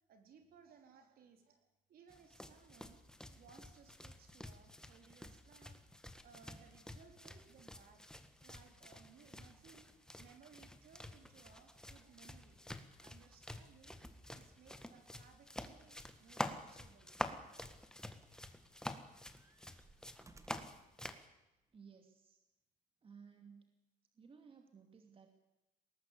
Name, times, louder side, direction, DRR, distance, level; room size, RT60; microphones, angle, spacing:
voice 1, 0.1-3.0 3.3-5.8 6.2-8.0 8.4-9.9 10.2-12.6 13.0-14.0 14.3-17.1, right 6 dB, 60° right, 5 dB, 4.0 m, -63 dB
sound 1, 2.1-21.3, left 1 dB, 5° left, 1.6 m, -49 dB
sound 2, 17.5-17.8 18.2-18.9 19.3-20.8 21.7-21.8, right 2 dB, 20° right, 1.8 m, -64 dB
voice 2, 21.7-22.4 23.0-23.7 24.1-25.3, right 6 dB, 35° right, 5 dB, 2.5 m, -58 dB
21.0 x 18.5 x 8.6 m, 0.95 s
cardioid pair, 110°, 17 cm